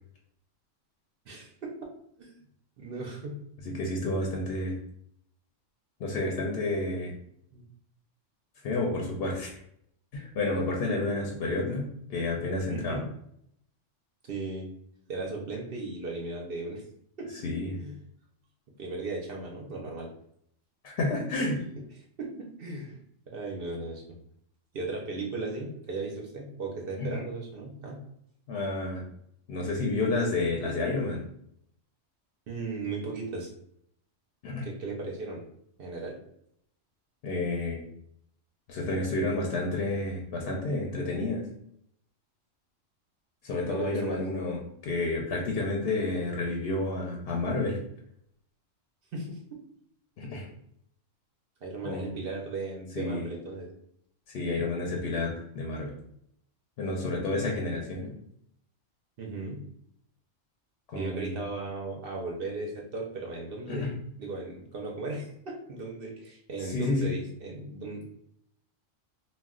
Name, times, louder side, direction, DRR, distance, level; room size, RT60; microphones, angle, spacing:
voice 1, 1.3-1.7 2.2-2.3 2.8-3.4 7.5-7.6 12.7-13.1 14.2-14.7 15.1-16.8 17.2-17.3 17.8-17.9 18.8-20.1 21.5-21.6 22.2-23.0 23.3-24.0 24.7-28.0 32.5-33.5 34.6-35.4 35.8-36.2 43.7-44.2 49.1-49.6 51.6-53.7 59.2-59.6 61.0-68.0, right 3 dB, 60° right, 0 dB, 0.6 m, -36 dB
voice 2, 3.6-4.8 6.0-7.1 8.6-9.5 10.1-13.0 17.3-17.8 20.8-21.6 27.0-27.2 28.5-29.0 29.5-31.2 34.4-34.6 37.2-37.8 38.7-41.4 43.4-47.8 50.2-50.5 51.8-52.1 52.9-53.3 54.3-56.0 56.8-58.1 60.9-61.3 63.7-63.9 66.6-67.1, left 2 dB, 60° left, -1 dB, 0.7 m, -30 dB
2.3 x 2.1 x 3.6 m, 0.72 s
omnidirectional pair, 1.3 m